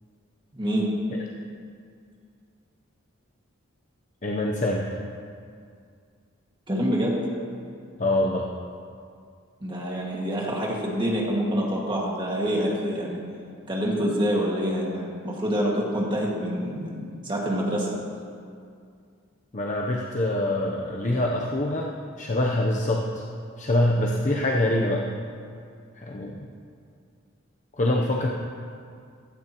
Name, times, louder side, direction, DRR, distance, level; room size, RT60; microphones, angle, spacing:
voice 1, 0.5-0.9 6.7-7.2 9.6-13.2 13.7-17.9, equal, 25° right, -3 dB, 1.9 m, -26 dB
voice 2, 4.2-5.0 8.0-8.4 19.5-21.9 22.2-23.2 23.6-25.0 26.0-26.5 27.8-28.3, left 1 dB, 35° left, -1 dB, 0.7 m, -25 dB
15.5 x 12.5 x 3.0 m, 2.3 s
head